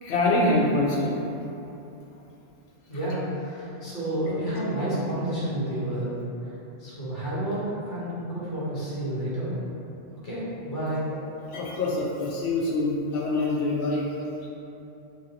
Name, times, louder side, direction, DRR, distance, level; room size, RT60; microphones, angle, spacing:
voice 1, 0.0-1.1 11.5-14.1, left 2 dB, 70° left, -4 dB, 0.8 m, -25 dB
voice 2, 2.9-6.1 6.8-9.6 10.1-11.0, right 1 dB, 45° left, -10 dB, 1.1 m, -30 dB
3.1 x 2.6 x 2.7 m, 2.9 s
omnidirectional pair, 1.2 m